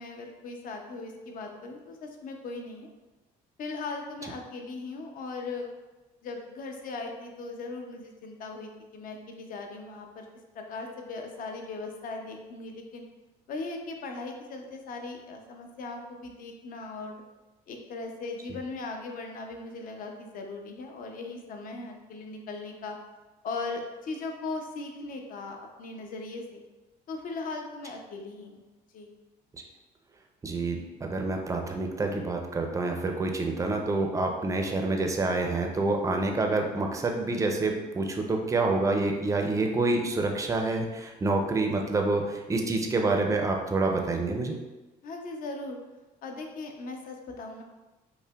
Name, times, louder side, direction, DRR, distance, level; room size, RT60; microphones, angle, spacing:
voice 1, 0.0-2.9 3.6-5.7 6.2-10.3 10.5-13.0 13.5-17.2 17.7-23.0 23.4-26.6 27.1-28.6 28.9-29.1 45.0-45.8 46.2-47.6, left 3 dB, 55° left, 3 dB, 0.6 m, -38 dB
voice 2, 30.4-44.6, right 2 dB, 20° right, 2 dB, 0.5 m, -27 dB
5.5 x 2.1 x 2.3 m, 1.1 s
cardioid pair, 110°, 17 cm